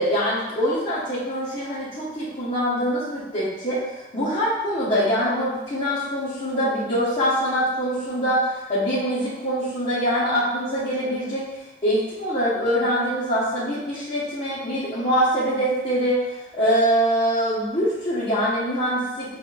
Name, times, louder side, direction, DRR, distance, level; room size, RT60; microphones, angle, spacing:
voice 1, 0.0-11.4 11.8-19.4, equal, 25° left, -12 dB, 1.2 m, -24 dB
7.5 x 2.6 x 2.5 m, 1.1 s
head